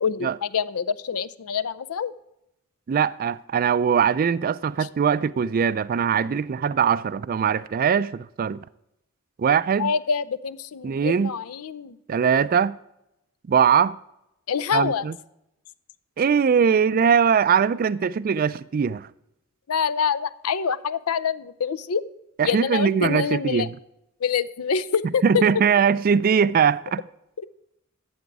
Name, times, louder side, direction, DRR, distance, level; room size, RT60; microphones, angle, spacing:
voice 1, 0.0-2.1 4.8-4.9 9.8-12.0 14.5-15.0 19.7-22.0 22.4-23.7 24.2-25.4, left 6 dB, 85° left, 0.6 m, -26 dB
voice 2, 2.9-8.6 9.4-9.9 10.8-11.3 12.1-12.8 13.5-14.0 14.7-15.1 16.2-19.1 22.4-23.7 25.2-27.0, right 7 dB, 40° right, 0.3 m, -21 dB
12.0 x 7.9 x 4.7 m
head